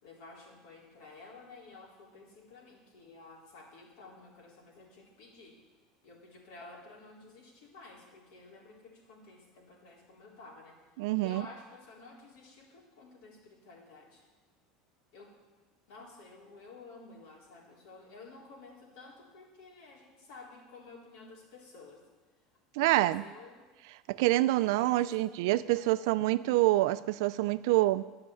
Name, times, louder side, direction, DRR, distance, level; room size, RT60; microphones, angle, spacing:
voice 1, 0.0-5.6 6.0-10.8 11.2-14.2 15.1-15.4 15.9-22.0 22.7-23.7 24.8-25.4 25.7-26.1, left 3 dB, 75° left, -3 dB, 3.7 m, -52 dB
voice 2, 11.0-11.4 22.8-23.2 24.1-28.0, right 17 dB, 75° right, 16 dB, 0.4 m, -26 dB
10.5 x 6.8 x 8.6 m, 1.3 s
supercardioid pair, 105°, 2 cm